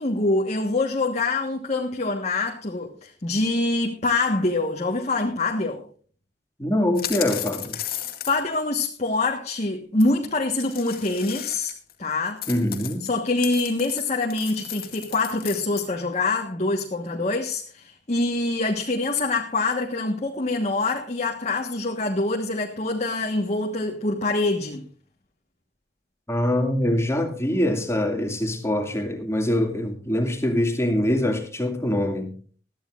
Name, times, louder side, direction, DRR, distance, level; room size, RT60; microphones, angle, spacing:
voice 1, 0.0-5.8 8.3-11.7 12.0-12.4 13.0-24.9, left 2 dB, 40° left, 1.4 m, -25 dB
voice 2, 6.6-7.8 12.5-13.1 26.3-32.3, left 1 dB, 15° left, 2.3 m, -24 dB
sound 1, 7.0-8.6 10.0-10.1 10.6-11.9 12.4-15.9, left 11 dB, 55° left, 2.0 m, -34 dB
21.0 x 14.0 x 2.5 m
head